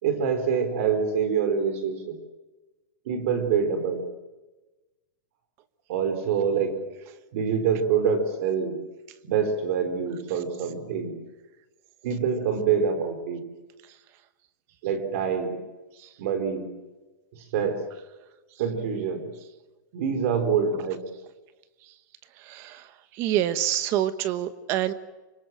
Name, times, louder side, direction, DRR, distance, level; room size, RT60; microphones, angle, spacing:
voice 1, 0.0-2.2 3.1-4.0 5.9-6.8 7.3-8.8 9.2-11.2 12.0-13.5 14.8-15.6 16.2-16.7 17.3-17.9 18.6-19.3 19.9-21.0, right 6 dB, 45° right, 9 dB, 4.5 m, -25 dB
voice 2, 22.4-22.8 23.1-24.9, right 12 dB, 25° right, 14 dB, 1.1 m, -26 dB
25.5 x 22.5 x 7.7 m, 1.1 s
supercardioid pair, 180°, 10 cm